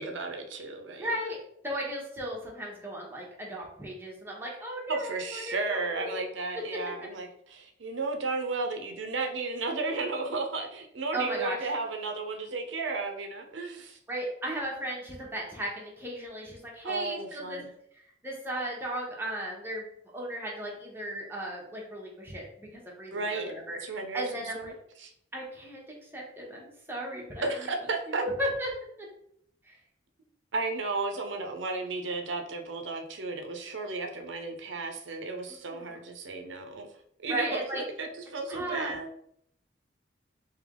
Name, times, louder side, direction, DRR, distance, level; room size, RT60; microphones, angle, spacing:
voice 1, 0.0-1.1 4.9-14.0 16.8-17.7 23.1-23.5 23.8-25.1 27.4-28.2 30.5-36.9 37.2-37.6 38.0-39.1, right 3 dB, 75° right, 4 dB, 0.6 m, -34 dB
voice 2, 0.9-1.4 1.6-6.2 6.7-6.8 11.1-11.7 14.1-17.6 17.9-19.8 20.1-24.7 25.3-25.8 26.1-27.6 28.1-28.7 29.6-29.8 35.5-36.0 37.3-37.8 38.5-38.9, right 1 dB, 10° right, -2 dB, 0.9 m, -36 dB
3.4 x 2.9 x 3.6 m, 0.69 s
head